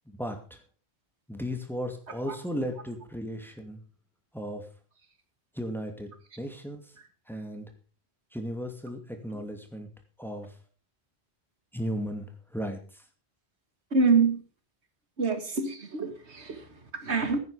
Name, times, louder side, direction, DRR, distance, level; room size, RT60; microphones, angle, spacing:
voice 1, 0.1-0.6 1.3-3.8 4.3-4.7 5.5-6.1 6.4-6.9 7.3-7.7 8.3-9.9 10.2-10.5 11.7-13.0, equal, ahead, 2.5 m, -35 dB
voice 2, 13.9-14.4 15.2-17.4, right 4 dB, 90° right, 2.1 m, -26 dB
16.5 x 9.5 x 5.1 m
omnidirectional pair, 1.1 m